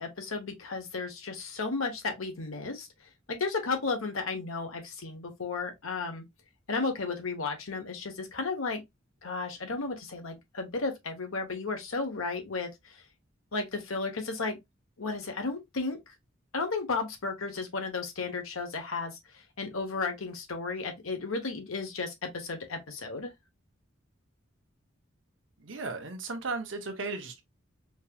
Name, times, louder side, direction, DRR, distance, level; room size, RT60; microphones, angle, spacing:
voice 1, 0.0-2.9 3.3-6.2 6.7-8.8 9.2-13.0 13.5-14.6 15.0-16.1 16.5-23.3, left 4 dB, 85° left, 1.1 m, -34 dB
voice 2, 25.6-27.4, right 3 dB, 65° right, 0.9 m, -35 dB
4.5 x 2.9 x 2.3 m
head